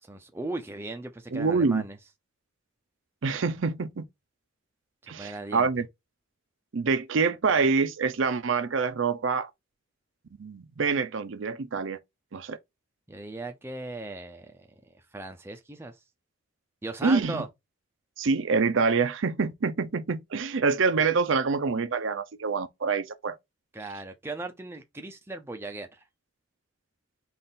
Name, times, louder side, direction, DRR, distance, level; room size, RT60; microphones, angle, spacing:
voice 1, 0.0-2.0 5.0-5.7 13.1-16.0 16.8-17.5 23.7-26.0, right 2 dB, 10° right, 0.4 m, -38 dB
voice 2, 1.3-1.8 3.2-4.0 5.1-5.9 6.7-9.5 10.4-12.0 12.3-12.6 17.0-17.4 18.2-23.4, right 4 dB, 70° right, 0.5 m, -26 dB
4.0 x 2.5 x 3.6 m
head